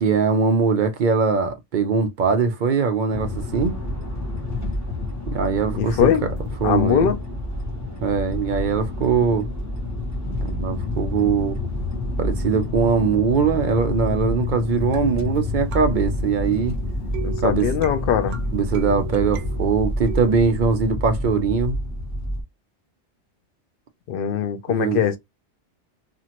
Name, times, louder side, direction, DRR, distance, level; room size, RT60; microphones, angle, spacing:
voice 1, 0.0-3.8 5.3-6.1 6.6-7.1 8.0-9.5 10.4-11.6 12.2-16.8 17.4-17.7 18.5-21.8 24.8-25.0, right 5 dB, 55° right, 0.6 m, -21 dB
sound 1, 3.1-22.4, left 2 dB, 15° left, 0.8 m, -28 dB
voice 2, 5.7-6.3 6.6-7.2 17.2-18.4 24.1-25.2, left 9 dB, 60° left, 0.7 m, -21 dB
sound 2, 14.9-20.4, right 8 dB, 90° right, 0.9 m, -37 dB
2.9 x 2.5 x 2.8 m
omnidirectional pair, 1.2 m